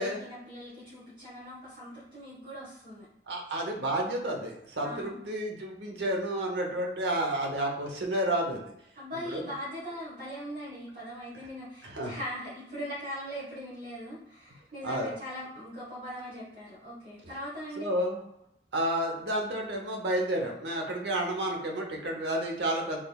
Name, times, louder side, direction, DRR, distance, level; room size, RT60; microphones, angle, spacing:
voice 1, 0.0-3.1 4.8-5.2 8.9-17.9, equal, 50° right, -10 dB, 1.3 m, -40 dB
voice 2, 3.3-8.7 9.3-9.4 11.9-12.1 14.8-15.1 17.8-18.2 18.7-23.0, right 1 dB, 80° right, 1 dB, 0.8 m, -31 dB
3.8 x 3.3 x 2.3 m, 0.79 s
head